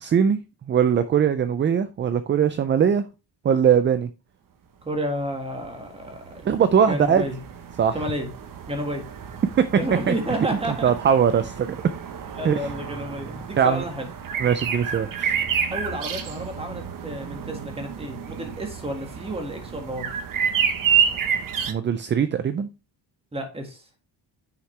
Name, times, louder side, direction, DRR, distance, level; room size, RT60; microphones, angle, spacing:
voice 1, 0.0-0.4 0.7-3.0 3.4-4.1 6.5-7.3 7.8-8.0 9.6-9.7 10.1-10.2 10.8-11.8 12.4-12.7 13.6-13.8 14.4-15.4 21.7-22.7, right 8 dB, 30° right, 0.3 m, -21 dB
voice 2, 4.8-6.4 6.8-7.4 7.9-8.3 8.7-9.0 9.7-10.9 12.4-14.1 15.7-20.1 23.3-23.8, equal, 15° right, 1.8 m, -31 dB
sound 1, 5.5-21.7, right 7 dB, 45° right, 1.0 m, -29 dB
9.5 x 5.8 x 3.3 m
cardioid pair, 175°, 44 cm